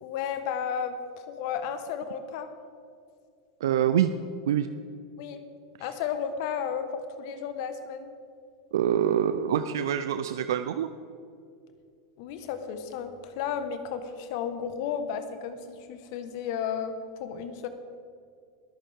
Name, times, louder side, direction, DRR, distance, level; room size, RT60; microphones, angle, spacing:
voice 1, 0.0-2.5 5.2-5.4 5.8-8.1 12.2-17.7, left 7 dB, 60° left, 8 dB, 1.4 m, -33 dB
voice 2, 3.6-4.1 4.5-4.7 8.7-10.9, right 10 dB, 80° right, 10 dB, 0.5 m, -25 dB
22.5 x 8.7 x 3.6 m, 2.4 s
hypercardioid pair, 105°, 2 cm